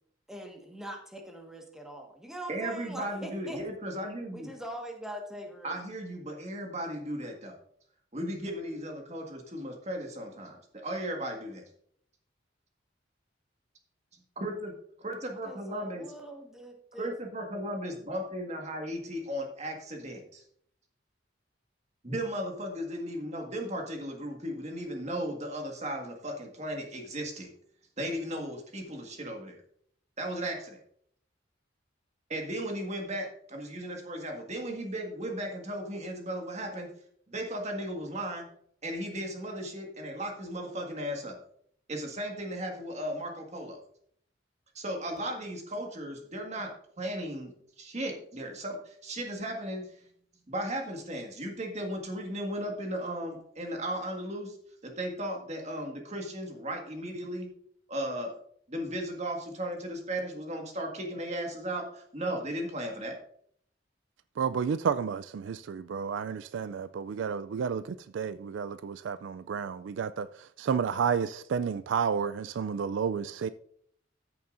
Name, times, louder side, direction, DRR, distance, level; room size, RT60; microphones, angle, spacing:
voice 1, 0.3-3.6 4.3-5.8 15.4-17.1, right 1 dB, 5° right, 1.5 m, -42 dB
voice 2, 2.5-4.5 5.6-7.5 8.1-11.6 14.3-14.7 15.0-16.0 17.0-20.4 22.0-27.5 28.0-29.6 30.2-30.8 32.3-36.9 37.3-38.5 38.8-41.4 41.9-43.8 44.7-46.7 47.0-47.5 47.8-49.8 50.5-54.6 54.8-57.5 57.9-58.3 58.7-63.1, right 1 dB, 35° right, 1.8 m, -36 dB
voice 3, 64.4-73.5, right 6 dB, 75° right, 0.3 m, -31 dB
14.0 x 6.8 x 2.6 m
head